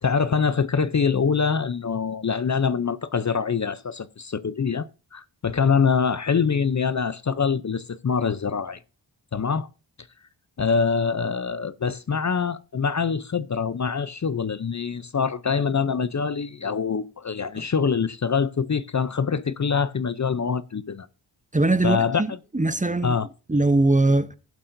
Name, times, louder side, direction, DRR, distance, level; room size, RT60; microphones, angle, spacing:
voice 1, 0.0-8.8 9.3-9.7 10.6-21.1 21.8-22.2 23.0-23.3, left 6 dB, 40° left, 0.6 m, -24 dB
voice 2, 21.5-23.1 23.5-24.4, right 2 dB, 15° right, 0.7 m, -21 dB
16.5 x 7.6 x 2.6 m
wide cardioid pair, 75°, 47 cm